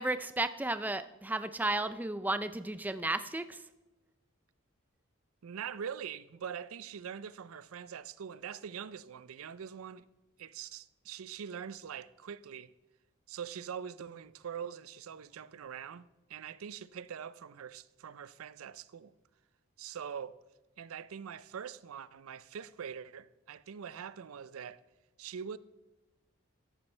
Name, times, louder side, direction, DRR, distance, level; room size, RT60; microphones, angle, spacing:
voice 1, 0.0-3.6, right 2 dB, 10° right, 0.3 m, -33 dB
voice 2, 5.4-10.1 10.4-12.7 13.3-19.1 19.8-20.4 20.8-24.8 25.2-25.6, right 7 dB, 85° right, 0.4 m, -43 dB
14.0 x 10.5 x 3.3 m
head